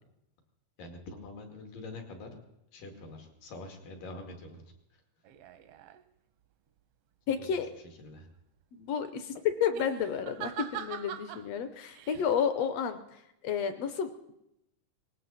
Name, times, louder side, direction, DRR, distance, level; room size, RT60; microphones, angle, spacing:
voice 1, 0.8-2.3 2.7-4.6 7.3-8.3, left 2 dB, 90° left, 3 dB, 4.0 m, -45 dB
sound 1, 5.3-6.0 9.6-11.5 11.9-12.3, right 10 dB, 80° right, 1.3 m, -42 dB
voice 2, 7.3-7.7 8.7-13.0 13.4-14.1, left 7 dB, 70° left, 10 dB, 1.6 m, -31 dB
19.5 x 17.5 x 4.1 m, 0.85 s
omnidirectional pair, 3.7 m